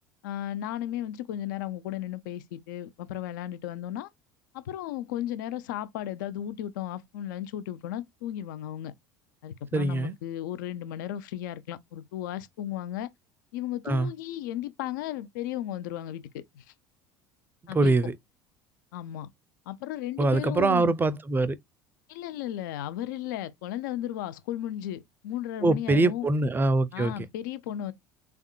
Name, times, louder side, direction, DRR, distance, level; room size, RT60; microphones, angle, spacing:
voice 1, 0.2-4.1 4.5-8.9 9.4-13.1 13.5-16.6 17.7-18.0 18.9-19.3 19.7-20.9 22.1-26.3 26.9-27.9, left 12 dB, 70° left, 0.5 m, -35 dB
voice 2, 9.7-10.1 13.9-14.1 17.7-18.2 20.2-21.6 25.6-27.3, right 2 dB, 20° right, 0.5 m, -24 dB
3.6 x 3.4 x 2.2 m
hypercardioid pair, 70°, 11 cm